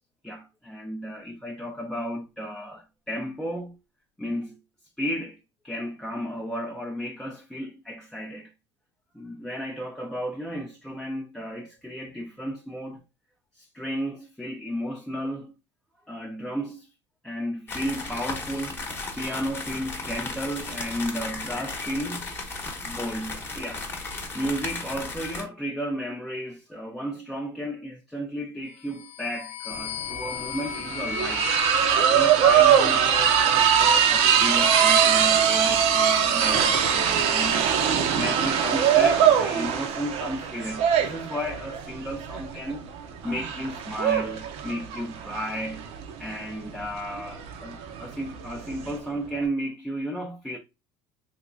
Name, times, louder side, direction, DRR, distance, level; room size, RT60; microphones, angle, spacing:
voice 1, 0.2-3.8 4.2-4.6 5.0-5.4 5.6-8.5 9.1-13.0 13.5-15.5 16.1-16.9 17.2-22.3 22.8-23.8 24.3-31.5 32.1-37.8 38.1-42.8 43.2-45.9 46.2-50.6, equal, 5° left, 0.5 m, -33 dB
sound 1, 17.7-25.4, left 3 dB, 20° left, 1.0 m, -35 dB
sound 2, 28.8-33.1, left 9 dB, 65° left, 0.5 m, -36 dB
sound 3, 29.8-29.9 30.1-49.0, right 8 dB, 60° right, 0.7 m, -22 dB
3.5 x 2.8 x 2.5 m
supercardioid pair, 115°, 12 cm